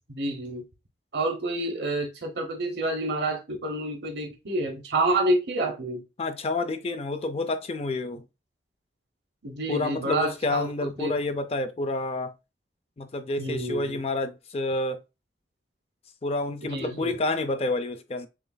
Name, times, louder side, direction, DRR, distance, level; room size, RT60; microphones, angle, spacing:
voice 1, 0.1-0.6 1.1-6.0 9.4-11.2 13.4-14.0 16.6-17.1, right 2 dB, 70° right, 0.9 m, -28 dB
voice 2, 6.2-8.2 9.7-12.3 13.0-15.0 16.2-18.3, left 2 dB, 35° left, 0.4 m, -29 dB
6.2 x 2.5 x 2.2 m
head